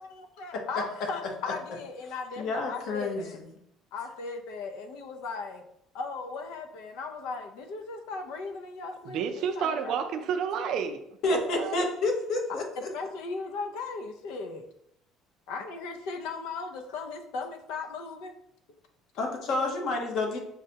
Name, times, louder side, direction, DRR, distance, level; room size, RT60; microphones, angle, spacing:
voice 1, 0.0-3.4 3.9-5.6 5.9-10.0 12.9-14.7 15.5-18.3, left 4 dB, 80° left, 5 dB, 0.5 m, -37 dB
voice 2, 2.4-3.4 11.2-12.9 19.2-20.4, left 2 dB, 50° left, 2 dB, 0.8 m, -29 dB
voice 3, 9.1-11.0 11.3-11.9, right 7 dB, 55° right, 7 dB, 0.4 m, -30 dB
6.4 x 2.2 x 2.8 m, 0.76 s
cardioid pair, 160°, 0 cm